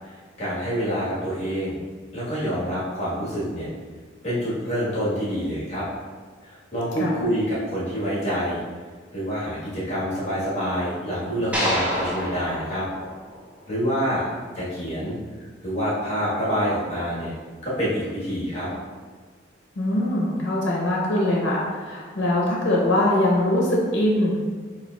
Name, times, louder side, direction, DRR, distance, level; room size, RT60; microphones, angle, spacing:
voice 1, 0.0-1.8 2.1-3.7 4.2-5.9 6.4-8.6 9.1-12.9 13.7-14.3 14.5-17.3 17.6-18.7, equal, 35° left, -10 dB, 1.2 m, -27 dB
sound 1, 11.5-13.9, equal, 5° right, 0.5 m, -28 dB
voice 2, 19.8-24.4, left 1 dB, 70° left, -3 dB, 0.7 m, -22 dB
6.7 x 2.4 x 2.2 m, 1.5 s
head